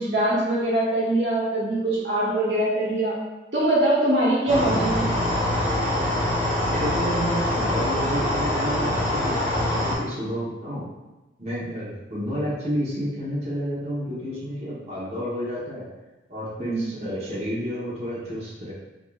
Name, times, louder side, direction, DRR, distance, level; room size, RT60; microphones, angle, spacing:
voice 1, 0.0-3.1 3.5-5.1 16.6-16.9, right 1 dB, 80° right, -7 dB, 1.3 m, -23 dB
sound 1, 4.5-9.9, left 1 dB, 20° left, 1.2 m, -24 dB
voice 2, 6.7-10.8 11.4-15.8 16.3-18.7, equal, 35° right, -9 dB, 1.1 m, -30 dB
5.2 x 2.7 x 2.4 m, 1.1 s
head